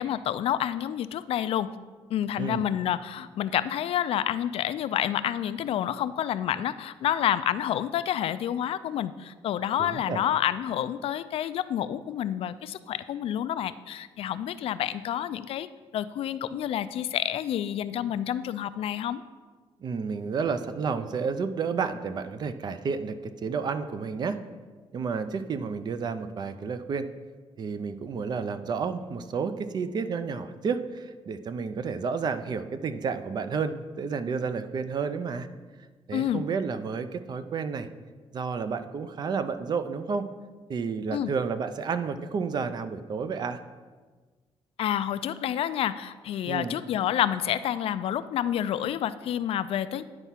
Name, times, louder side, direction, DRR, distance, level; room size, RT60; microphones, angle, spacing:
voice 1, 0.0-1.7 2.1-15.7 15.9-19.2 36.1-36.4 41.1-41.3 44.8-50.0, left 10 dB, 65° left, 14 dB, 0.3 m, -29 dB
voice 2, 9.8-10.2 19.8-24.4 24.9-27.1 27.6-35.5 36.1-37.9 38.3-40.3 40.7-43.6 46.5-46.7, right 5 dB, 45° right, 11 dB, 0.5 m, -31 dB
9.8 x 4.5 x 5.7 m, 1.4 s
cardioid pair, 140°, 10 cm